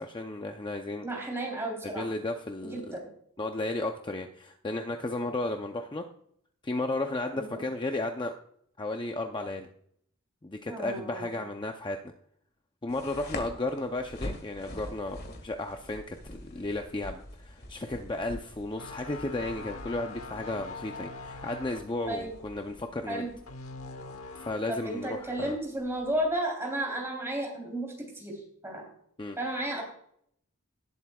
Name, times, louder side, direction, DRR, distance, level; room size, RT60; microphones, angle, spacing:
voice 1, 0.0-1.1 1.8-3.0 3.4-6.0 6.6-8.3 8.8-9.7 10.4-12.1 12.8-15.2 15.4-23.3 24.3-25.6 29.2-29.4, left 2 dB, 20° left, 4 dB, 0.6 m, -34 dB
voice 2, 1.0-2.1 2.6-3.1 7.3-7.6 10.7-11.4 22.1-22.3 23.1-23.3 24.7-28.9 29.4-29.8, right 1 dB, 10° right, 0 dB, 3.4 m, -33 dB
sound 1, 12.9-26.4, left 1 dB, 45° left, 1.9 m, -45 dB
sound 2, 18.8-24.8 25.1-25.4, left 3 dB, 80° left, 1.1 m, -43 dB
18.5 x 7.9 x 2.4 m, 0.66 s
head